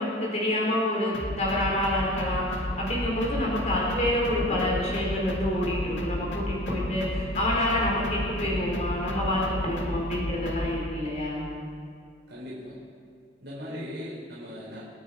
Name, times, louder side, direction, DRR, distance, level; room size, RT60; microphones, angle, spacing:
voice 1, 0.0-11.5 13.6-13.8, left 1 dB, 40° left, -3 dB, 4.1 m, -27 dB
sound 1, 1.1-10.8, left 1 dB, 90° left, 1.9 m, -33 dB
voice 2, 12.3-12.8 13.4-14.8, equal, 70° right, -8 dB, 4.5 m, -40 dB
26.5 x 9.8 x 4.8 m, 2.3 s
head